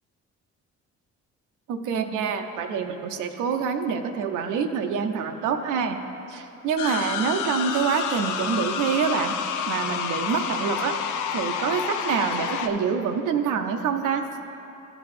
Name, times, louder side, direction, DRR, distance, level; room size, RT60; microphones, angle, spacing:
voice 1, 1.7-6.0 6.3-9.3 9.7-11.0 11.3-14.2, right 6 dB, 85° right, 6 dB, 0.6 m, -26 dB
sound 1, 6.8-12.7, left 8 dB, 80° left, 0.6 m, -29 dB
13.5 x 4.5 x 4.2 m, 3.0 s
cardioid pair, 90°, 30 cm